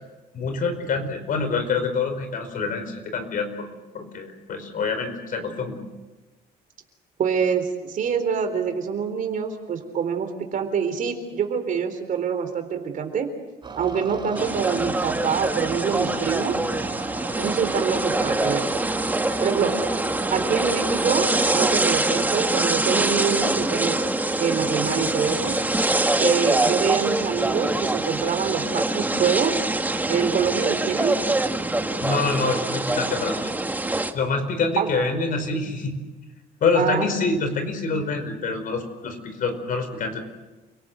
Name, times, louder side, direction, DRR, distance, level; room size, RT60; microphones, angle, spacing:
voice 1, 0.3-3.7 3.9-5.8 32.0-33.5 34.1-36.0 36.6-40.2, left 4 dB, 55° left, 7 dB, 5.0 m, -26 dB
voice 2, 7.2-13.3 13.8-16.6 17.4-18.7 19.4-19.7 20.3-24.0 24.4-25.6 26.2-29.5 30.1-31.2 34.8-34.9 36.7-37.1, right 7 dB, 50° right, 6 dB, 4.0 m, -25 dB
sound 1, 13.6-22.6, right 4 dB, 30° right, 4.3 m, -36 dB
sound 2, 14.3-34.1, right 2 dB, 10° right, 1.7 m, -24 dB
29.5 x 18.0 x 8.0 m, 1.2 s
cardioid pair, 110°, 17 cm